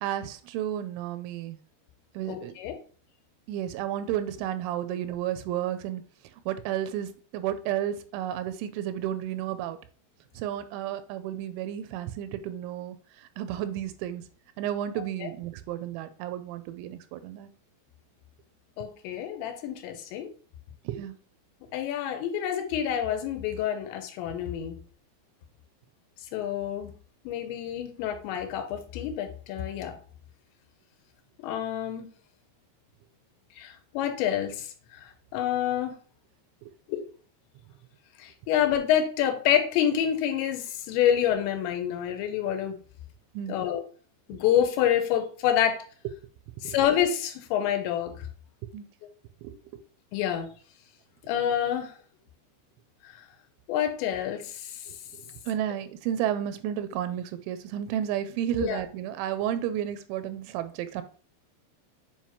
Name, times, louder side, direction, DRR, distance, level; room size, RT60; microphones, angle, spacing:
voice 1, 0.0-1.6 2.2-2.5 3.5-6.0 6.5-9.8 10.4-13.0 13.4-14.2 14.6-17.5 20.9-21.1 36.6-36.7 43.3-43.6 46.6-46.8 48.7-48.9 49.4-49.6 54.9-55.0 55.5-61.0, right 11 dB, 90° right, 3.0 m, -32 dB
voice 2, 2.3-2.8 15.2-15.3 18.8-20.3 21.7-24.8 26.3-26.9 27.3-30.0 31.4-32.1 33.6-36.0 36.9-37.0 38.2-42.8 43.5-43.8 44.3-45.9 46.6-48.3 50.1-50.5 51.3-52.0 53.7-54.9 58.6-58.8, left 10 dB, 80° left, 2.9 m, -27 dB
7.4 x 4.8 x 2.9 m
omnidirectional pair, 5.3 m